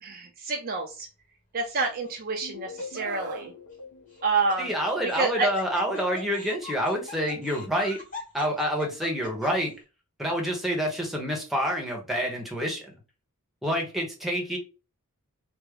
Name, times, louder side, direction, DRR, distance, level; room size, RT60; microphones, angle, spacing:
voice 1, 0.0-1.1 1.5-3.5 4.2-4.7 5.0-5.5, right 4 dB, 40° right, 2 dB, 0.5 m, -28 dB
Laughter, 1.7-2.2 2.8-2.9 4.1-9.7, left 2 dB, 35° left, 1.5 m, -41 dB
sound 1, 2.4-5.4, left 4 dB, 75° left, 1.7 m, -43 dB
Screaming, 2.9-3.5 5.0-5.2, right 4 dB, 85° right, 0.6 m, -41 dB
voice 2, 4.6-8.0 8.3-9.7 10.2-12.9 13.6-14.6, equal, ahead, 0 dB, 0.8 m, -28 dB
3.4 x 2.1 x 3.4 m, 0.32 s
head